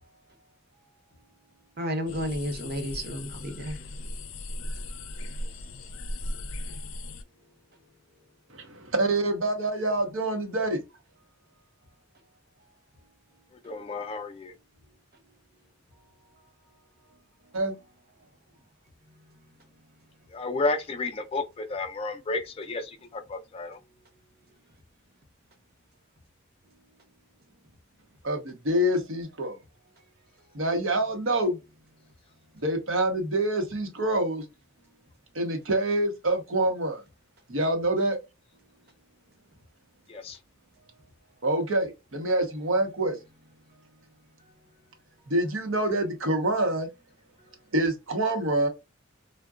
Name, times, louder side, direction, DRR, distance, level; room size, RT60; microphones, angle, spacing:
voice 1, 1.8-3.8, equal, 50° right, 0.7 m, -32 dB
sound 1, 2.1-7.2, left 1 dB, 90° left, 0.5 m, -37 dB
voice 2, 8.5-10.8 17.5-17.7 28.2-29.6 30.5-31.6 32.5-34.4 35.3-37.0 37.5-38.2 41.4-43.1 45.3-46.9 47.7-48.7, right 1 dB, 80° right, 0.8 m, -26 dB
voice 3, 13.5-14.5 20.3-23.8 40.1-40.4, left 3 dB, 30° left, 0.3 m, -32 dB
3.6 x 2.2 x 2.3 m
head